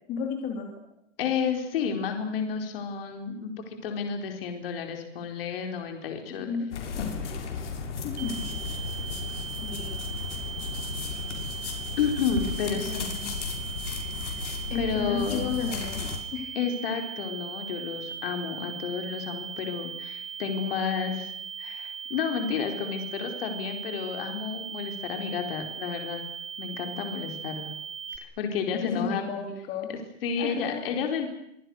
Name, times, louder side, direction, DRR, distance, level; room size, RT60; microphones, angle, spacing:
voice 1, 0.1-0.7 6.4-6.7 8.0-8.5 9.6-10.0 12.8-13.4 14.7-16.0 16.3-16.5 28.7-29.9 30.4-30.9, left 6 dB, 20° left, 2 dB, 3.0 m, -33 dB
voice 2, 1.2-6.5 12.0-13.1 14.2-14.4 14.7-15.5 16.5-21.3 21.6-26.2 26.6-27.7 28.2-29.2 29.9-31.3, left 6 dB, 45° left, 5 dB, 4.4 m, -31 dB
sound 1, 6.7-16.2, left 5 dB, 65° left, 7.1 m, -34 dB
sound 2, 8.2-28.2, right 7 dB, 20° right, 2.5 m, -39 dB
26.0 x 25.5 x 6.5 m, 0.76 s
hypercardioid pair, 170°, 38 cm